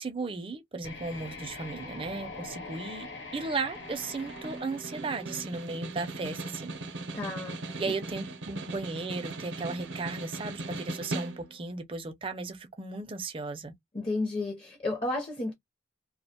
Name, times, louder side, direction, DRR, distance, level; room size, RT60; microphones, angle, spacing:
voice 1, 0.0-3.1 3.3-6.8 7.8-13.7, right 3 dB, 30° right, 0.4 m, -35 dB
sound 1, 0.8-5.7, left 3 dB, 85° left, 1.0 m, -43 dB
Snare drum, 3.7-11.7, right 2 dB, 80° right, 0.6 m, -39 dB
voice 2, 7.1-7.9 13.9-15.5, left 2 dB, 30° left, 0.6 m, -32 dB
2.4 x 2.1 x 2.7 m
head